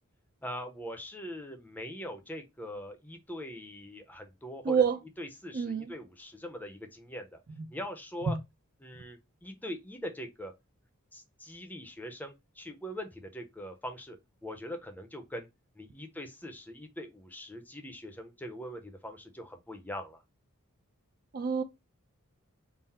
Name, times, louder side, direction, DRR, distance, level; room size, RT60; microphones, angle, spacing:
voice 1, 0.4-4.8 5.2-7.4 7.7-8.3 8.8-10.5 11.1-14.2 14.4-15.5 15.8-20.2, equal, 10° left, 0.6 m, -42 dB
voice 2, 4.6-5.0 5.5-5.9 7.6-7.7 8.3-8.4 21.3-21.6, right 6 dB, 40° right, 0.4 m, -27 dB
3.7 x 2.0 x 4.1 m
head